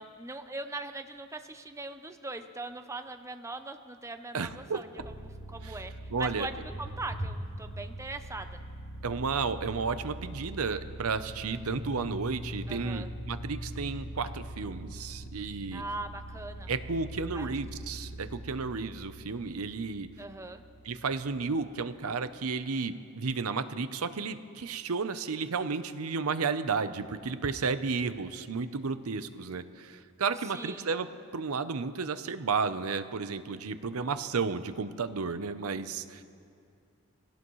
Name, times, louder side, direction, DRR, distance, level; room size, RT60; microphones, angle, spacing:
voice 1, 0.0-4.9 5.2-8.6 12.7-13.1 15.7-16.7 17.3-17.5 20.2-20.6 30.5-30.9, right 2 dB, 15° right, 8 dB, 0.7 m, -40 dB
voice 2, 4.3-4.8 5.6-5.8 6.1-6.5 9.0-15.8 16.7-20.1 20.8-36.2, right 4 dB, 75° right, 11 dB, 0.7 m, -33 dB
sound 1, 5.0-21.6, right 1 dB, 55° left, 2.8 m, -42 dB
22.0 x 17.0 x 3.2 m, 2.3 s
head